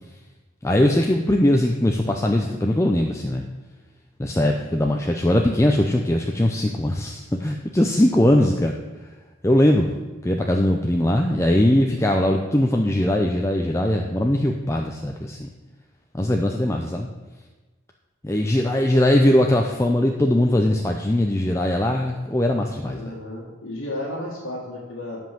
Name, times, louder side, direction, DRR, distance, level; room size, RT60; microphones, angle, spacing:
voice 1, 0.6-3.4 4.2-8.7 9.4-9.9 10.2-15.5 16.1-17.1 18.2-23.0, left 1 dB, 15° left, 2 dB, 0.5 m, -20 dB
voice 2, 22.9-25.2, left 1 dB, 85° left, -5 dB, 1.9 m, -33 dB
10.0 x 5.4 x 7.6 m, 1.2 s
head